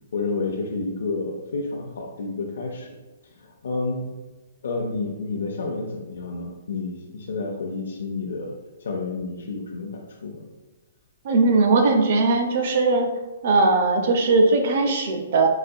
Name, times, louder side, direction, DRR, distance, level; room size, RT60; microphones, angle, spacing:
voice 1, 0.1-2.9 3.4-4.0 4.6-8.5 8.8-10.5, left 3 dB, 80° left, 0 dB, 0.5 m, -30 dB
voice 2, 11.2-13.1 13.4-15.5, right 3 dB, 50° right, 4 dB, 0.5 m, -19 dB
4.0 x 2.7 x 2.3 m, 1.2 s
hypercardioid pair, 165°, 0 cm